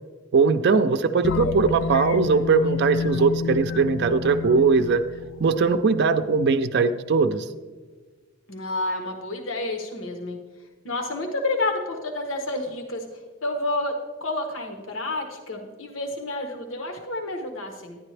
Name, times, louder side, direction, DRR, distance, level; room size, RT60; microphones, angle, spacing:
voice 1, 0.3-5.0 5.4-7.5, right 4 dB, 60° right, 9 dB, 0.5 m, -20 dB
sound 1, 1.2-5.9, left 6 dB, 70° left, 0.3 m, -29 dB
voice 2, 8.5-10.4 10.8-13.0 13.4-13.9 14.2-18.0, left 2 dB, 90° left, 3 dB, 1.1 m, -29 dB
11.5 x 10.0 x 3.3 m, 1.4 s
head